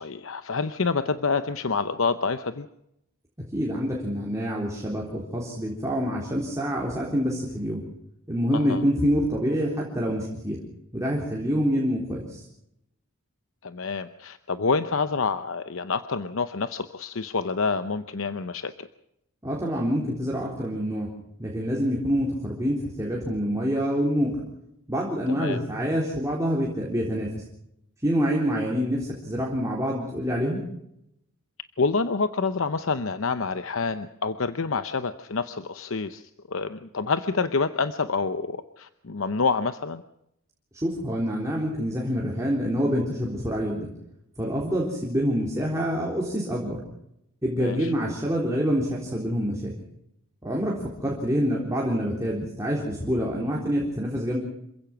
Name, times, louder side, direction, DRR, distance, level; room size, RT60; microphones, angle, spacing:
voice 1, 0.0-2.7 8.5-8.8 13.6-18.9 25.3-25.6 31.8-40.0 47.6-47.9, left 4 dB, 65° left, 10 dB, 0.8 m, -27 dB
voice 2, 3.5-7.8 8.3-10.6 10.9-12.4 19.4-21.1 21.4-24.4 24.9-27.3 28.0-30.6 40.7-43.9 44.4-46.8 47.4-49.7 50.4-54.4, equal, 15° right, -3 dB, 3.8 m, -26 dB
27.0 x 16.0 x 6.0 m, 0.80 s
head